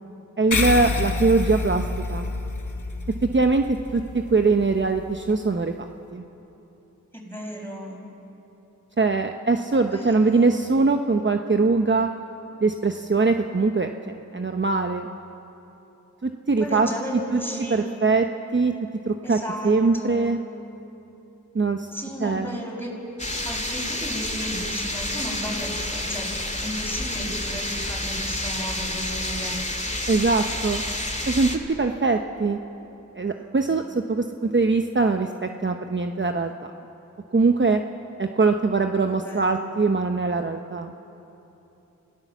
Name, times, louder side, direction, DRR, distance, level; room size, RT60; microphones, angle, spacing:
voice 1, 0.4-1.8 2.1-2.3 3.3-6.2 9.0-12.1 12.6-15.1 16.2-16.9 17.3-17.4 17.7-18.3 18.5-18.7 19.1-19.4 19.6-20.4 21.5-21.9 22.2-22.6 30.1-30.8 31.3-31.5 31.8-32.6 33.2-36.5 37.3-37.8 38.2-40.9, right 3 dB, 40° right, 5 dB, 0.9 m, -22 dB
sound 1, 0.5-5.3, left 3 dB, 70° left, 1.4 m, -29 dB
voice 2, 7.1-8.0 9.9-10.6 16.6-18.0 19.2-20.3 21.9-23.0 23.4-26.3 26.6-29.6 33.2-33.6 39.1-39.7, equal, 5° left, -1 dB, 6.1 m, -34 dB
sound 2, 23.2-31.6, left 1 dB, 20° left, 2.3 m, -29 dB
29.0 x 16.0 x 7.2 m, 3.0 s
wide cardioid pair, 55°, 31 cm